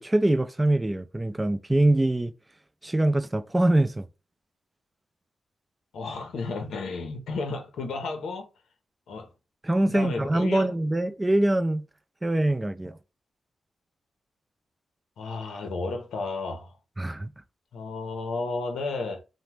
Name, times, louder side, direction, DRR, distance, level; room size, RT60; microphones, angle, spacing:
voice 1, 0.0-2.3 2.8-4.1 9.6-11.9 12.2-13.0 17.0-17.3, right 1 dB, 15° right, 0.4 m, -23 dB
voice 2, 5.9-8.5 9.1-9.3 9.9-10.7 15.2-16.7 17.7-19.2, left 3 dB, 85° left, 0.6 m, -32 dB
2.8 x 2.1 x 3.2 m
cardioid pair, 75°, 0 cm